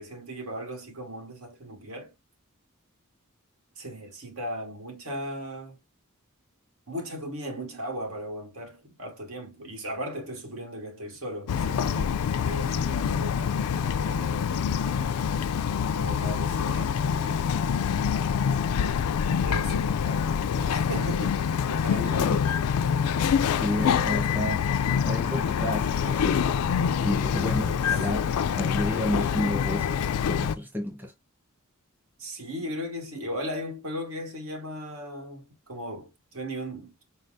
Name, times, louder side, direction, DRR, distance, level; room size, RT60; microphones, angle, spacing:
voice 1, 0.0-2.1 3.8-5.8 6.9-15.0 15.9-17.9 19.4-22.4 32.2-37.1, equal, 70° right, 1.2 m, -37 dB
Bird vocalization bird call bird song, 11.5-30.6, left 7 dB, 85° left, 0.4 m, -26 dB
voice 2, 22.0-22.4 23.4-24.6 25.0-26.7 27.0-30.0 30.3-31.1, left 1 dB, 10° right, 1.0 m, -31 dB
4.2 x 3.3 x 2.6 m
head